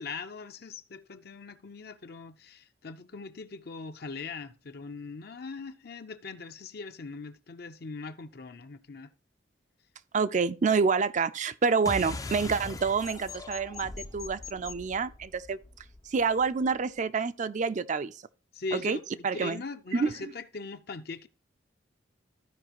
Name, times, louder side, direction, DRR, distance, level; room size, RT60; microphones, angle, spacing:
voice 1, 0.0-9.1 18.5-21.3, left 4 dB, 60° left, 0.7 m, -40 dB
voice 2, 10.1-15.6 16.1-18.2 18.7-19.0 19.2-19.6 19.9-20.1, right 5 dB, 45° right, 0.4 m, -27 dB
sound 1, 11.8-16.8, left 3 dB, 20° left, 0.4 m, -41 dB
14.5 x 5.0 x 3.0 m
head